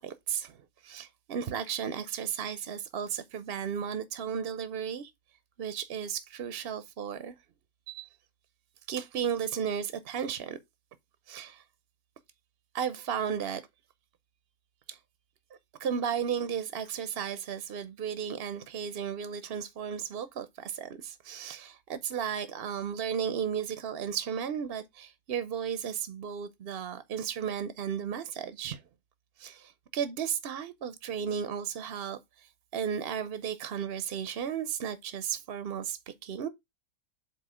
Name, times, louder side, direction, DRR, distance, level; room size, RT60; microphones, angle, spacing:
voice 1, 0.0-0.6 0.8-5.1 5.6-7.3 7.9-8.1 8.9-10.6 11.3-11.6 12.7-13.6 14.9-15.0 15.8-28.8 29.4-32.5 32.7-36.5, right 8 dB, 55° right, 0.7 m, -34 dB
7.9 x 2.7 x 4.8 m
omnidirectional pair, 1.6 m